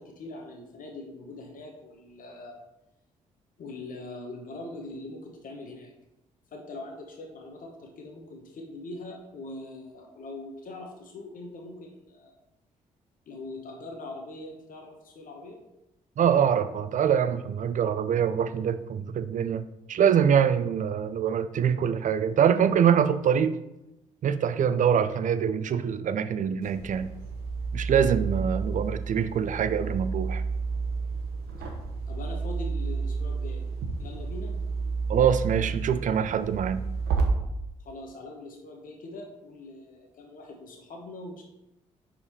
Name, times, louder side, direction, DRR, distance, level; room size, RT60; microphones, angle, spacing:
voice 1, 0.0-2.6 3.6-5.9 6.5-12.4 13.3-15.6 32.1-33.6 34.0-34.5 37.8-41.4, left 2 dB, 55° left, 1 dB, 1.1 m, -42 dB
voice 2, 16.2-23.5 24.2-27.1 27.7-30.4 35.1-36.9, right 8 dB, 50° right, 12 dB, 0.5 m, -24 dB
sound 1, 26.6-37.2, right 4 dB, 75° right, 1.0 m, -31 dB
5.0 x 4.9 x 4.2 m, 0.92 s
hypercardioid pair, 45°, 17 cm